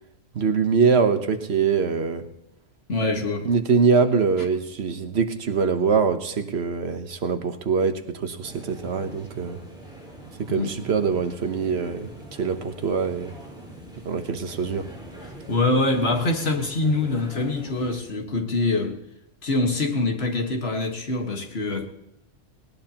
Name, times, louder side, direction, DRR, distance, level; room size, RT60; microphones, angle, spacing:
voice 1, 0.3-2.2 3.4-9.6 10.4-12.1 12.4-13.3 14.0-14.9, right 5 dB, 60° right, 1.2 m, -23 dB
voice 2, 2.9-3.5 4.4-4.5 10.5-10.7 15.2-19.0 19.4-21.9, left 2 dB, 60° left, 1.8 m, -24 dB
sound 1, 8.4-18.0, right 1 dB, 5° right, 5.0 m, -43 dB
19.0 x 19.0 x 2.9 m
omnidirectional pair, 1.2 m